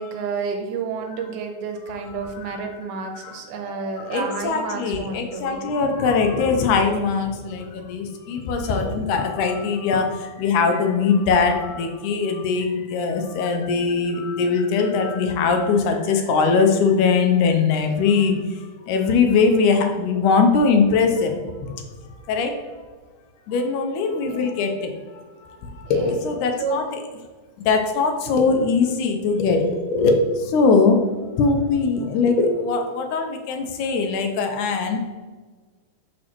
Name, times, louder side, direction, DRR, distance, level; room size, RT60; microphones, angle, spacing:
voice 1, 0.0-5.7 24.3-24.5 25.9-26.2 26.6-26.8, right 5 dB, 85° right, 4 dB, 2.3 m, -30 dB
voice 2, 2.2-2.6 3.1-3.4 3.8-21.8 22.1-22.8 23.5-24.9 25.6-27.0 27.6-35.0, left 4 dB, 80° left, 4 dB, 2.1 m, -21 dB
6.3 x 6.2 x 3.0 m, 1.4 s
omnidirectional pair, 3.7 m